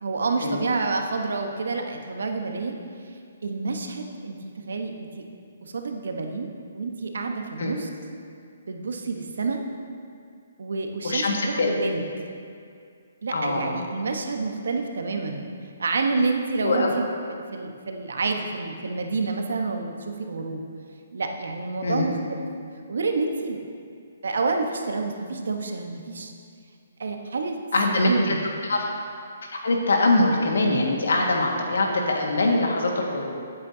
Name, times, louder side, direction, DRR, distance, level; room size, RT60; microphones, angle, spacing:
voice 1, 0.0-2.8 3.4-5.2 5.6-6.5 6.7-7.9 8.7-9.6 10.6-12.0 13.2-15.5 15.8-17.1 17.5-20.6 21.1-22.5 22.9-23.6 24.2-26.3 27.0-27.6 28.0-28.5, right 3 dB, 80° right, 4 dB, 1.1 m, -28 dB
voice 2, 11.0-11.7 13.3-13.8 16.6-16.9 21.8-22.1 27.7-28.4 28.6-28.9 29.4-33.3, left 2 dB, 85° left, 0 dB, 1.7 m, -23 dB
15.0 x 8.4 x 2.8 m, 2.3 s
hypercardioid pair, 170°, 0 cm